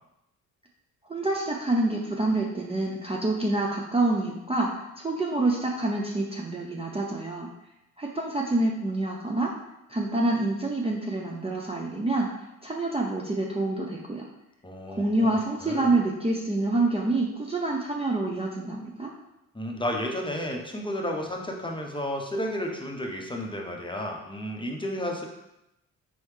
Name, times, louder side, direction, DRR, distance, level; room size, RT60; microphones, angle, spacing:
voice 1, 1.1-4.7 5.0-7.5 8.0-9.5 9.9-12.3 12.6-14.3 14.9-19.1, right 2 dB, 15° right, -1 dB, 0.6 m, -27 dB
voice 2, 14.6-16.0 19.5-25.2, equal, 10° left, 0 dB, 0.8 m, -32 dB
4.1 x 3.2 x 3.2 m, 0.88 s
hypercardioid pair, 50°, 39 cm